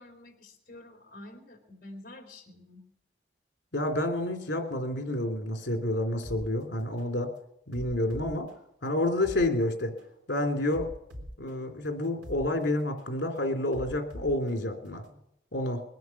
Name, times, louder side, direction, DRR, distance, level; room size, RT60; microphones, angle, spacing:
voice 1, 0.0-2.8, left 1 dB, 50° left, 1 dB, 4.1 m, -48 dB
voice 2, 3.7-7.3 7.7-8.5 8.8-9.9 10.3-10.9 11.4-15.0 15.5-15.8, left 1 dB, 75° left, 4 dB, 3.0 m, -29 dB
sound 1, 6.2-6.4 7.0-7.2 7.7-9.5 10.0-10.2 10.7-12.5 13.0-13.2 13.7-15.2, equal, 90° right, 3.5 m, -44 dB
21.5 x 9.3 x 7.1 m, 0.82 s
head